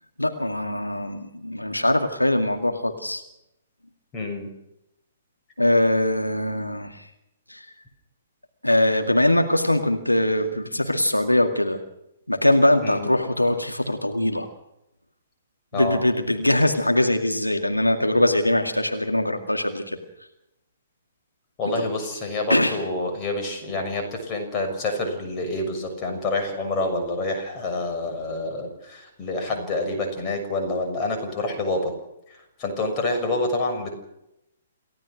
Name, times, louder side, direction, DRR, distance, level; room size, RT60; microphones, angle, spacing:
voice 1, 0.2-3.2 5.6-7.0 7.5-7.7 8.6-11.8 12.3-14.5 15.7-20.0 22.5-22.8, left 1 dB, 90° left, 5 dB, 2.1 m, -22 dB
voice 2, 4.1-4.5 12.8-13.1 15.7-16.0 21.6-31.9 32.6-34.0, left 2 dB, 25° left, 4 dB, 6.7 m, -27 dB
28.5 x 16.5 x 6.3 m, 0.85 s
figure-of-eight pair, 120°, 0 cm